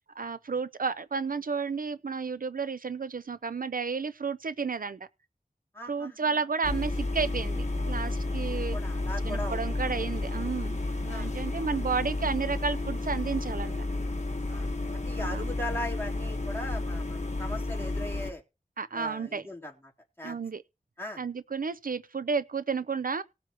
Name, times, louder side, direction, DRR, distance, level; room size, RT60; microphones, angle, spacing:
voice 1, 0.2-5.0 5.9-8.8 9.2-13.9 15.2-15.5 18.8-19.4 20.2-20.6 21.2-23.2, right 5 dB, 70° right, 0.5 m, -32 dB
voice 2, 5.7-6.4 8.7-9.6 11.0-11.3 14.5-18.4 18.9-19.7 20.2-20.4 21.0-21.2, left 1 dB, 15° left, 3.4 m, -39 dB
sound 1, 6.6-18.3, left 2 dB, 50° left, 1.3 m, -31 dB
19.0 x 7.6 x 3.0 m
wide cardioid pair, 40°, 15 cm